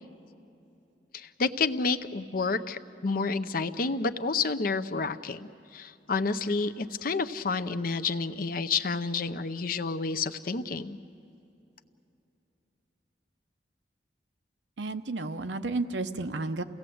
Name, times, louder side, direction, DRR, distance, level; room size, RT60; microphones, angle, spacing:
voice 1, 1.1-11.0, left 4 dB, 55° left, 11 dB, 0.7 m, -30 dB
voice 2, 14.8-16.6, right 3 dB, 85° right, 8 dB, 0.9 m, -32 dB
28.5 x 17.0 x 7.8 m, 2.7 s
head